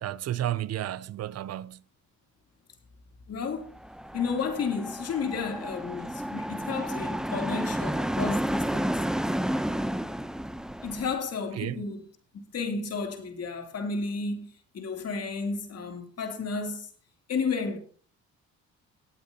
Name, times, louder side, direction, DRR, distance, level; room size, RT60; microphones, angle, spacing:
voice 1, 0.0-1.8 11.5-11.8, right 12 dB, 55° right, 0.5 m, -32 dB
voice 2, 3.3-3.7 4.1-8.9 10.8-12.0 12.5-14.5 14.7-16.9 17.3-17.8, left 5 dB, 55° left, 2.9 m, -32 dB
sound 1, 3.8-11.2, equal, ahead, 0.6 m, -31 dB
19.0 x 8.5 x 2.8 m
cardioid pair, 90°, 30 cm